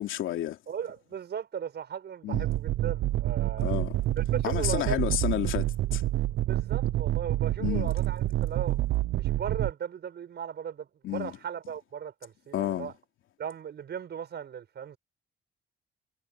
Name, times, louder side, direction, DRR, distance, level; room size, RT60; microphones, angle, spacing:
voice 1, 0.0-0.6 2.2-2.4 3.6-4.0 4.4-6.0 7.6-7.9 11.0-11.3 12.5-12.9, left 13 dB, 80° left, 3.1 m, -30 dB
voice 2, 0.7-3.8 4.2-5.0 6.4-8.8 9.2-12.9 13.4-15.0, right 8 dB, 60° right, 6.6 m, -37 dB
sound 1, 2.3-9.7, right 15 dB, 80° right, 0.7 m, -28 dB
cardioid pair, 90°, 20 cm